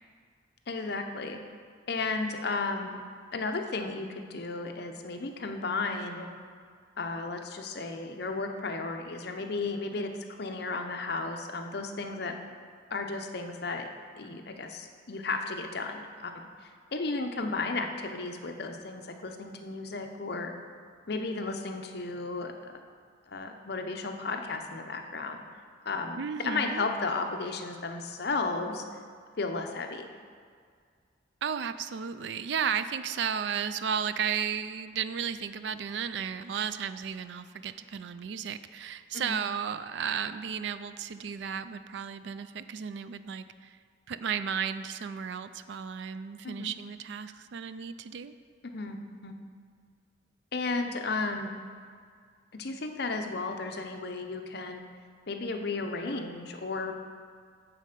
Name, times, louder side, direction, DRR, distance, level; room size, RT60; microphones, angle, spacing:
voice 1, 0.7-1.4 1.9-3.0 3.3-6.3 7.0-10.1 10.4-12.4 12.9-13.9 14.2-16.5 16.9-20.5 21.1-22.5 23.3-25.4 25.8-28.8 29.4-30.1 39.1-39.4 46.4-46.7 48.6-49.4 50.5-51.6 52.5-54.8 55.3-56.9, left 3 dB, 55° left, 5 dB, 0.7 m, -34 dB
voice 2, 26.2-26.9 31.4-43.8 44.1-48.3, right 7 dB, 65° right, 12 dB, 0.4 m, -34 dB
9.0 x 4.2 x 6.6 m, 2.1 s
head